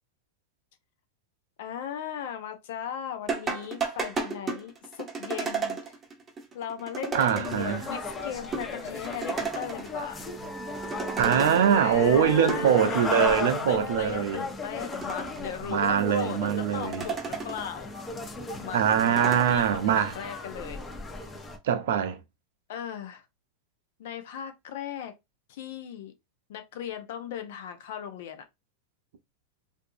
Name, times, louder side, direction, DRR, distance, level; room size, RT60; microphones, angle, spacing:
voice 1, 1.6-6.0 6.5-10.3 11.7-13.3 13.7-17.9 18.6-20.8 22.7-23.2 24.0-25.1 25.5-26.1 26.5-28.5, left 9 dB, 70° left, 0.6 m, -37 dB
sound 1, 3.3-7.9 8.2-8.3 8.5-10.3 10.6-11.9 12.3-13.6 14.1-14.2 14.7-15.9 16.5-17.8 18.2-19.7, right 5 dB, 25° right, 0.8 m, -34 dB
voice 2, 7.1-7.8 11.2-14.4 15.7-17.0 18.7-20.1 21.6-22.2, right 8 dB, 75° right, 0.5 m, -23 dB
sound 2, 7.4-21.6, left 3 dB, 25° left, 0.8 m, -36 dB
sound 3, 9.8-15.1, right 2 dB, 5° left, 0.4 m, -39 dB
2.5 x 2.4 x 2.7 m
hypercardioid pair, 105°, 0 cm